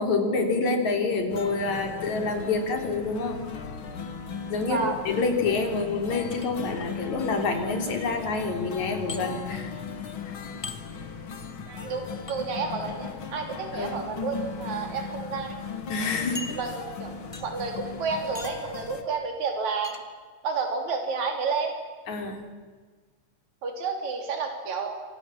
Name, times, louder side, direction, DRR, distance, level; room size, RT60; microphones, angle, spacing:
voice 1, 0.0-3.4 4.5-4.8 5.1-9.7 10.3-10.4 13.7-14.0 15.9-16.6 22.1-22.4, left 3 dB, 75° left, 4 dB, 4.7 m, -27 dB
sound 1, 1.3-19.0, left 5 dB, 50° left, 2.4 m, -38 dB
voice 2, 4.6-5.0 11.7-15.5 16.5-17.1 17.4-19.9 20.4-21.7 23.6-25.0, right 5 dB, 75° right, 3 dB, 4.6 m, -30 dB
sound 2, 6.3-6.9 9.1-9.2 10.6-10.8 12.3-12.4 13.7-14.0 14.7-14.8 15.2-15.3 16.3-17.0 17.3-17.7 18.3-18.7 19.8-20.0, left 3 dB, 15° left, 1.3 m, -39 dB
27.5 x 26.5 x 7.4 m, 1.4 s
omnidirectional pair, 3.3 m